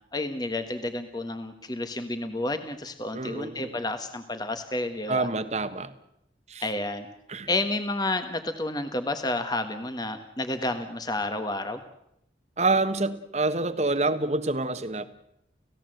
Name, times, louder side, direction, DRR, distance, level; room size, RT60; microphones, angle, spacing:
voice 1, 0.1-5.3 6.6-7.1 7.5-11.8, left 2 dB, 25° left, 8 dB, 1.4 m, -30 dB
voice 2, 3.1-3.8 5.1-5.9 6.5-6.6 7.3-7.5 12.6-15.0, right 2 dB, 40° right, 11 dB, 1.4 m, -27 dB
30.0 x 16.5 x 7.9 m, 0.81 s
head